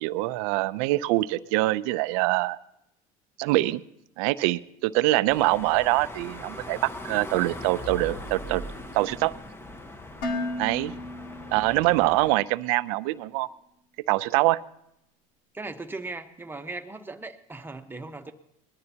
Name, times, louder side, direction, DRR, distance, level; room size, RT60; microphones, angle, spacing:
voice 1, 0.0-2.6 3.4-3.8 4.2-8.6 8.9-9.3 10.6-10.9 11.5-13.5 14.1-14.6, right 19 dB, 80° right, 16 dB, 0.5 m, -24 dB
sound 1, 5.3-12.3, left 1 dB, 15° left, 1.2 m, -40 dB
Dishes pots and pans, 10.2-12.3, left 2 dB, 85° left, 2.4 m, -34 dB
voice 2, 15.5-18.3, right 3 dB, 10° right, 6 dB, 1.1 m, -38 dB
21.0 x 13.5 x 2.9 m, 0.80 s
supercardioid pair, 105°, 18 cm